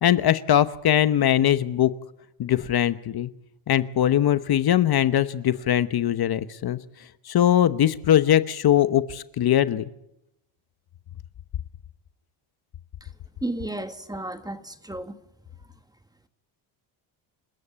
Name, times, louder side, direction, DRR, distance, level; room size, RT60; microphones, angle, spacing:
voice 1, 0.0-1.9 2.4-3.3 3.7-6.8 7.2-9.8, left 11 dB, 50° left, 1.0 m, -21 dB
voice 2, 13.4-15.1, right 1 dB, 10° right, 1.4 m, -33 dB
27.5 x 14.5 x 8.7 m
cardioid pair, 120°, 50 cm